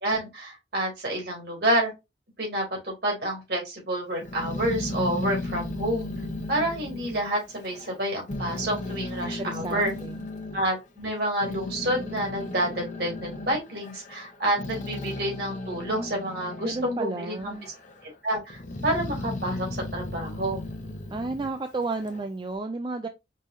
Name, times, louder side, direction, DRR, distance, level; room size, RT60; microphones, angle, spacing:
voice 1, 0.0-1.9 2.4-6.1 6.5-9.9 10.5-17.6 18.2-20.6, right 1 dB, 60° right, 2.6 m, -29 dB
Growling, 4.2-8.0 8.3-10.6 11.2-17.0 17.3-18.0 18.5-22.3, left 2 dB, 45° left, 1.1 m, -35 dB
voice 2, 9.2-10.2 16.6-17.7 21.1-23.1, right 3 dB, 25° right, 0.4 m, -32 dB
5.3 x 3.5 x 2.6 m
head